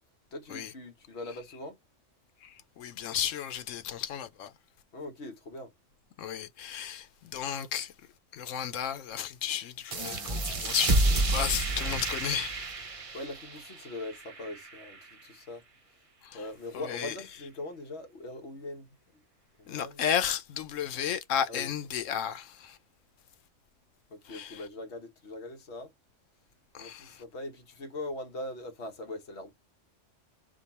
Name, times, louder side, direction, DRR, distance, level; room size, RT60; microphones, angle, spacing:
voice 1, 0.3-1.8 4.9-5.7 13.1-15.6 16.3-18.9 19.6-20.0 21.5-21.7 24.1-25.9 26.8-29.5, left 2 dB, 65° left, 1.4 m, -41 dB
voice 2, 2.4-4.5 6.2-7.9 8.3-12.5 16.2-16.4 16.7-17.2 19.7-22.8 24.3-24.6 26.7-27.2, left 9 dB, 90° left, 1.0 m, -33 dB
sound 1, 9.9-15.1, right 2 dB, 35° right, 0.7 m, -30 dB
5.1 x 2.3 x 4.1 m
omnidirectional pair, 1.3 m